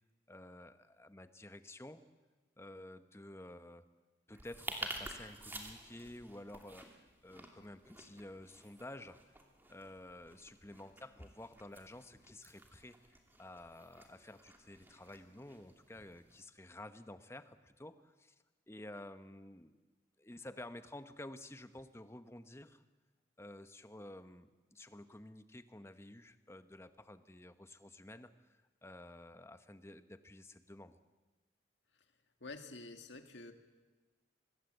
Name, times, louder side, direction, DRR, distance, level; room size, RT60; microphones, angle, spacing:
voice 1, 0.3-2.0 2.6-3.9 4.3-9.2 9.7-18.4 18.7-19.8 20.2-22.8 23.4-31.0, left 1 dB, 15° left, 10 dB, 0.9 m, -52 dB
sound 1, 4.3-16.4, right 1 dB, 10° right, 2.7 m, -51 dB
voice 2, 32.4-33.5, left 3 dB, 70° left, 6 dB, 2.1 m, -48 dB
25.0 x 20.0 x 8.1 m, 1.2 s
head